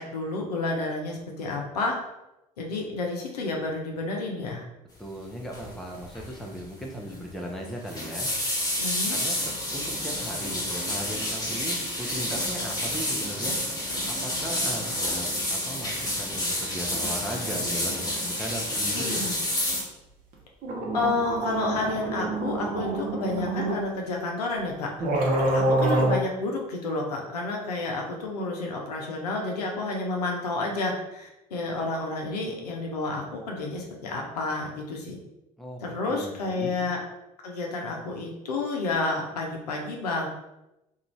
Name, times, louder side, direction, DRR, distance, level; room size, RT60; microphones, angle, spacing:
voice 1, 0.0-2.0 2.6-4.6 8.7-9.2 18.9-19.4 20.9-24.9 25.5-35.2 35.8-37.0 37.4-40.3, left 2 dB, 80° left, 0 dB, 0.5 m, -30 dB
voice 2, 5.0-8.3 9.1-13.6 14.1-19.3 35.6-35.8 36.1-36.7, equal, ahead, 0 dB, 0.6 m, -37 dB
sound 1, 5.5-5.8 6.0-6.3 6.6-6.7 7.6-19.8, left 1 dB, 20° left, 1.2 m, -29 dB
sound 2, 20.3-20.4 20.6-23.8 24.6-24.7 25.0-26.2, right 2 dB, 45° right, 0.8 m, -26 dB
2.5 x 2.4 x 3.0 m, 0.92 s
figure-of-eight pair, 55°, 20 cm